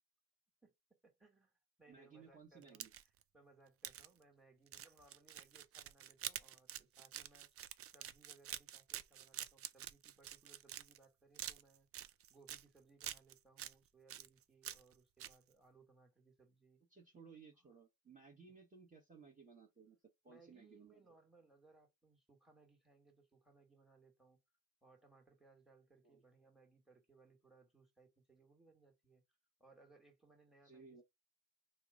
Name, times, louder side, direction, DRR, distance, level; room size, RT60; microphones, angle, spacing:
voice 1, 1.0-16.8 17.6-17.7 18.5-18.6 20.3-24.4 24.8-31.0, right 3 dB, ahead, 1.4 m, -67 dB
voice 2, 1.9-2.9 16.9-20.0 20.2-21.0 26.0-26.2 30.6-31.0, right 5 dB, 20° right, 1.1 m, -60 dB
sound 1, 2.6-3.2 3.8-4.1 4.7-11.0 11.4-12.6 13.0-13.7 14.1-14.9 15.2-15.4, right 11 dB, 40° right, 0.4 m, -47 dB
2.8 x 2.1 x 3.7 m
supercardioid pair, 80°, 38 cm